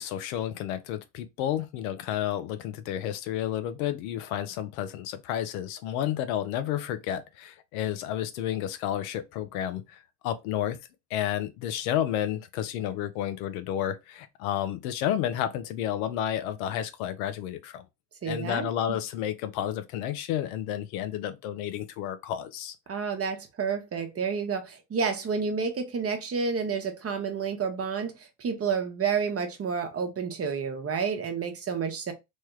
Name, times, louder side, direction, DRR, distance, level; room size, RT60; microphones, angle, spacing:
voice 1, 0.0-10.8 11.1-17.8 18.2-22.7, left 11 dB, 85° left, 0.6 m, -31 dB
voice 2, 18.2-19.0 22.9-32.1, right 5 dB, 35° right, 0.9 m, -30 dB
3.2 x 2.2 x 3.1 m
supercardioid pair, 75°, 41 cm